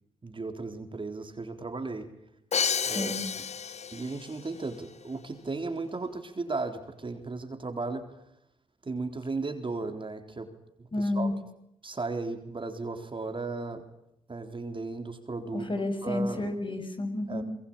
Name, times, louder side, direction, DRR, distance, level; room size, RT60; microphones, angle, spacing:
voice 1, 0.2-2.1 2.9-3.5 3.9-8.0 8.8-10.5 10.9-11.3 11.8-13.8 14.3-15.7 16.0-16.5 17.3-17.4, right 3 dB, 40° right, 6 dB, 3.9 m, -35 dB
Crash cymbal, 2.5-4.4, left 6 dB, 55° left, 1.0 m, -30 dB
voice 2, 10.9-11.3 15.5-17.4, left 2 dB, 35° left, 6 dB, 7.0 m, -30 dB
26.0 x 22.0 x 8.9 m, 0.78 s
supercardioid pair, 50°, 14 cm